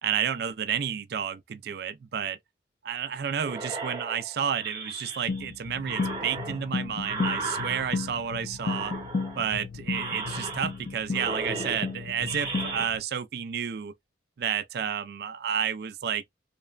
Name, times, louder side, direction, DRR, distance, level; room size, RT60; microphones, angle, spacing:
voice 1, 0.0-2.4 2.8-8.9 9.4-13.9 14.4-16.3, right 8 dB, 55° right, 0.3 m, -31 dB
sound 1, 3.4-5.5 5.8-8.2 8.6-9.5 9.9-10.9 11.1-12.9, right 3 dB, 20° right, 0.7 m, -36 dB
sound 2, 5.3-13.0, left 4 dB, 50° left, 0.4 m, -34 dB
2.9 x 2.1 x 2.3 m
head